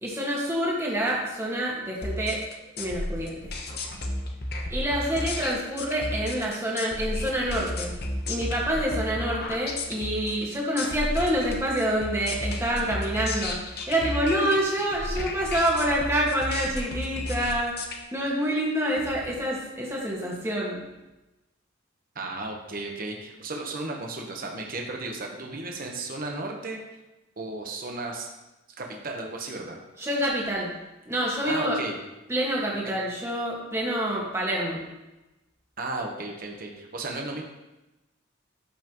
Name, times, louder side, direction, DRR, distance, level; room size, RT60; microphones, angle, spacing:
voice 1, 0.0-2.4 2.8-3.4 4.7-8.0 8.3-20.8 30.0-30.7 31.1-31.8 32.3-34.8, right 1 dB, 15° right, -4 dB, 1.7 m, -27 dB
sound 1, 2.0-18.0, left 1 dB, 50° left, 1.0 m, -33 dB
voice 2, 22.1-26.8 27.4-28.3 28.8-29.8 31.5-32.0 32.8-33.0 35.8-37.4, right 2 dB, 45° right, 1 dB, 1.1 m, -34 dB
12.5 x 5.7 x 3.0 m, 1.0 s
head